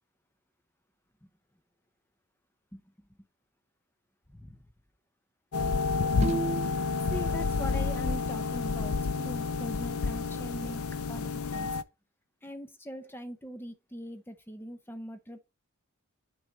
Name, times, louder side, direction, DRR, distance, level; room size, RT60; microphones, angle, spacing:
voice 1, 2.7-3.1 4.3-4.6 7.1-11.7 12.4-15.4, equal, 10° left, 0.7 m, -41 dB
sound 1, 5.5-11.8, left 4 dB, 80° left, 0.5 m, -30 dB
sound 2, 6.2-7.0 8.7-8.8 9.0-9.1 9.6-9.7 10.1-10.2 11.0-11.8, right 4 dB, 30° right, 0.5 m, -34 dB
9.5 x 4.7 x 3.9 m
head